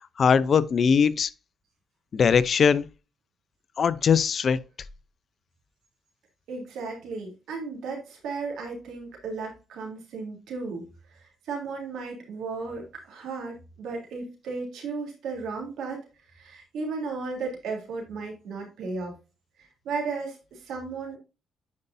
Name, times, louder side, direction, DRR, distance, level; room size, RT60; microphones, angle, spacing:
voice 1, 0.2-1.3 2.1-2.9 3.8-4.6, left 6 dB, 50° left, 0.6 m, -20 dB
voice 2, 6.5-10.8 11.1-16.1 16.3-19.1 19.6-21.2, right 4 dB, 80° right, 3.3 m, -35 dB
9.5 x 5.5 x 2.7 m
cardioid pair, 90°, 0 cm